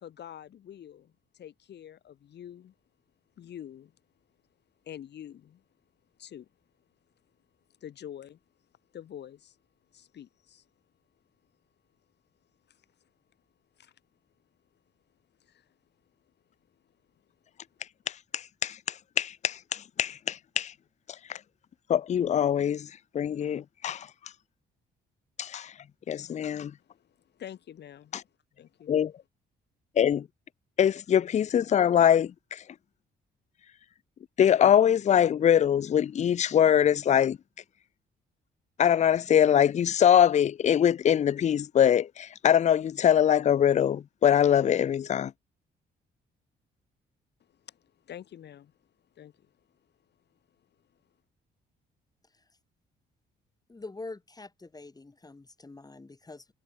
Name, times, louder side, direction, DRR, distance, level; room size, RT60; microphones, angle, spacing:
voice 1, 0.0-2.7 3.4-3.9 4.8-5.6 6.2-6.5 7.8-8.4 8.9-9.6 9.9-10.7 12.7-12.8 13.8-13.9 15.4-15.7 26.8-28.2 28.6-28.9 47.4-48.7 49.1-49.5, left 10 dB, 60° left, 1.3 m, -46 dB
voice 2, 18.1-20.7 21.3-21.4 21.9-22.9 23.1-24.1 25.4-25.7 26.1-26.7 28.1-28.2 28.9-29.1 30.0-30.3 30.8-32.6 34.4-37.4 38.8-45.3, left 9 dB, 35° left, 0.4 m, -23 dB
voice 3, 53.7-56.5, left 3 dB, 20° left, 2.6 m, -45 dB
cardioid pair, 90°, 20 cm